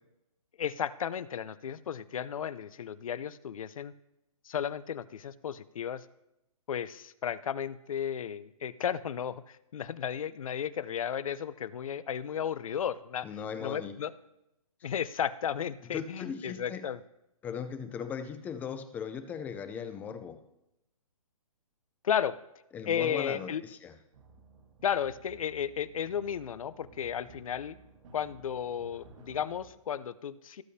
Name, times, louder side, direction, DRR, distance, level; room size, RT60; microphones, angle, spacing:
voice 1, 0.6-3.9 4.5-6.0 6.7-13.3 13.6-14.1 14.8-17.0 22.0-22.4 22.9-23.6 24.8-27.8 28.1-30.6, left 8 dB, 65° left, 16 dB, 0.6 m, -34 dB
voice 2, 13.2-14.0 14.8-14.9 15.9-16.8 17.4-20.4 22.7-23.9, left 7 dB, 10° left, 10 dB, 0.4 m, -38 dB
sound 1, 24.1-29.7, right 3 dB, 60° right, 1.9 m, -55 dB
17.5 x 8.2 x 2.8 m, 0.86 s
hypercardioid pair, 150°, 19 cm